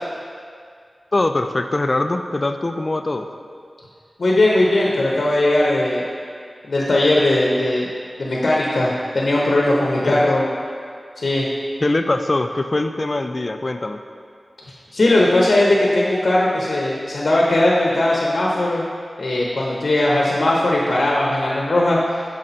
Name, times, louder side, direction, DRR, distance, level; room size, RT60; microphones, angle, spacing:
voice 1, 1.1-3.3 10.0-10.3 11.8-14.0, left 2 dB, 35° left, 7 dB, 0.3 m, -22 dB
voice 2, 4.2-6.0 6.6-7.9 8.2-10.4 11.2-11.4 14.9-18.9 19.2-22.2, left 1 dB, 70° left, -4 dB, 0.8 m, -18 dB
6.3 x 4.1 x 4.3 m, 2.2 s
wide cardioid pair, 100°, 0 cm